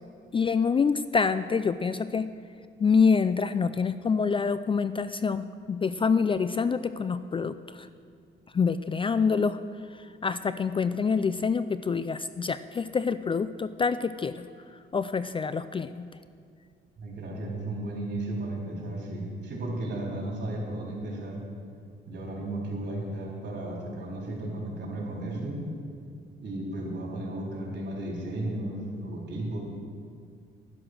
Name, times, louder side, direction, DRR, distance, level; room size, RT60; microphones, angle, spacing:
voice 1, 0.3-2.3 2.8-7.9 8.5-9.6 9.9-16.1, left 5 dB, 25° left, 13 dB, 0.4 m, -26 dB
voice 2, 17.0-21.4 22.1-25.6 26.4-29.6, right 1 dB, 60° right, -2 dB, 4.1 m, -34 dB
11.0 x 11.0 x 6.2 m, 2.2 s
cardioid pair, 90°, 20 cm